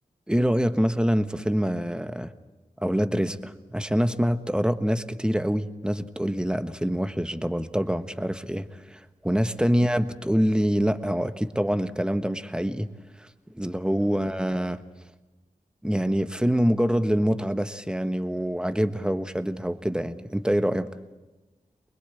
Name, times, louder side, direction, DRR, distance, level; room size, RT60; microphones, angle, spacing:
voice 1, 0.3-2.3 2.8-12.9 13.2-13.3 13.5-14.8 15.8-20.9, equal, 5° right, 10 dB, 1.3 m, -25 dB
23.5 x 21.0 x 8.4 m, 1.1 s
cardioid pair, 40°, 15 cm